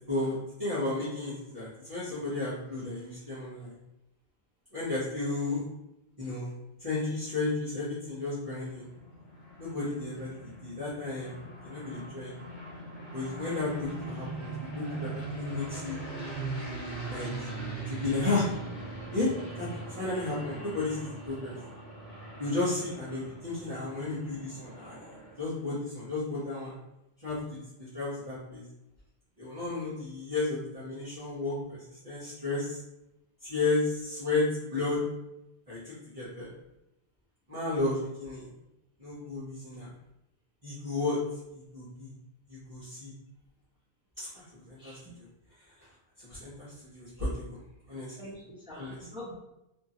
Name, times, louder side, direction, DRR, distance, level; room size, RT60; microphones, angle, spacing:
voice 1, 0.1-3.7 4.7-5.6 6.2-8.9 9.6-12.4 13.1-16.0 17.1-17.5 17.9-18.5 19.1-19.3 19.6-21.6 22.4-25.0 25.4-26.7 27.2-28.6 29.4-32.8 33.4-35.1 35.7-36.5 37.5-38.5 39.0-39.9 40.6-41.2 41.5-42.1 42.5-43.1 44.2-45.2 46.2-47.6 47.9-48.2 48.7-48.9, left 3 dB, 35° right, -12 dB, 1.0 m, -33 dB
sound 1, 8.5-25.7, right 2 dB, 45° left, 1.0 m, -41 dB
voice 2, 44.8-45.2 47.2-47.3 48.2-49.3, equal, 5° right, -7 dB, 0.7 m, -45 dB
2.8 x 2.5 x 2.8 m, 0.90 s
omnidirectional pair, 1.2 m